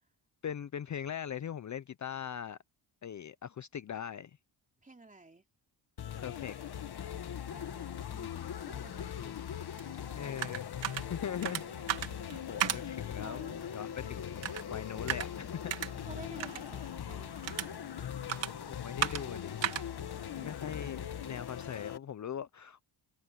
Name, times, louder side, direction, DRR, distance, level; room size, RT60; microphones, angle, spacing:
voice 1, 0.4-2.6 3.0-4.4 6.2-6.6 10.1-11.8 12.5-15.7 18.6-19.6 20.4-22.9, left 9 dB, 40° left, 0.6 m, -41 dB
voice 2, 4.8-5.4 7.5-10.2 13.2-13.6 13.8-14.1 16.1-17.9 20.4-20.6, right 3 dB, 15° right, 3.2 m, -53 dB
sound 1, 6.0-22.0, left 9 dB, 60° left, 1.8 m, -41 dB
sound 2, 9.8-21.4, right 10 dB, 75° right, 2.3 m, -39 dB
cardioid pair, 110°, 44 cm